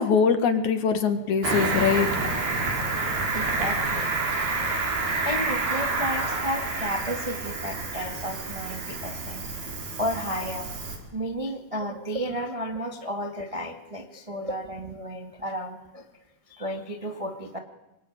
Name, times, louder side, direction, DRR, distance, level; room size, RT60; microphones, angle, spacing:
voice 1, 0.0-2.1, left 6 dB, 55° left, 9 dB, 2.8 m, -22 dB
Cricket, 1.4-11.0, right 3 dB, 70° right, 6.1 m, -28 dB
voice 2, 3.3-4.4 4.9-9.5 10.0-10.7 11.1-16.1 16.5-17.6, equal, 50° right, 4 dB, 0.4 m, -33 dB
25.5 x 21.5 x 9.5 m, 0.98 s
omnidirectional pair, 4.5 m